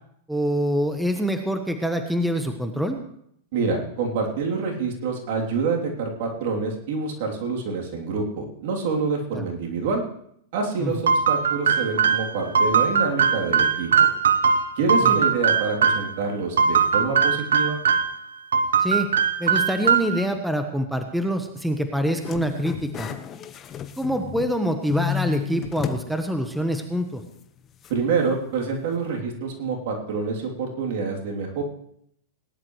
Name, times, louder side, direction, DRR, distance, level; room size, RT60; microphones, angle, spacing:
voice 1, 0.3-3.0 9.3-9.4 10.8-10.9 15.0-15.1 18.8-19.1 19.4-23.1 24.0-27.2, equal, ahead, 5 dB, 1.1 m, -25 dB
voice 2, 3.5-10.0 10.5-14.1 14.8-17.8 27.9-31.6, right 4 dB, 60° right, 0 dB, 3.2 m, -27 dB
sound 1, 11.1-16.1 16.6-18.2 18.5-20.2, right 6 dB, 85° right, 0.8 m, -20 dB
sound 2, 22.1-24.6 24.9-26.1 26.5-26.6 27.8-27.9, left 9 dB, 30° left, 0.9 m, -32 dB
19.0 x 11.0 x 3.2 m, 0.70 s
hypercardioid pair, 115°, 0 cm